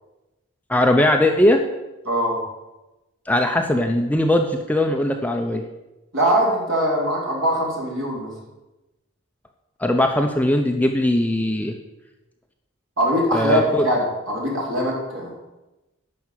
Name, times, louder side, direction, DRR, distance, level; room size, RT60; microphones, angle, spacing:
voice 1, 0.7-1.6 3.3-5.6 9.8-11.7 13.3-13.8, left 1 dB, 5° left, 3 dB, 0.7 m, -19 dB
voice 2, 2.1-2.4 6.1-8.3 13.0-15.3, equal, 65° right, -3 dB, 4.1 m, -22 dB
11.0 x 6.1 x 8.4 m, 1.0 s
head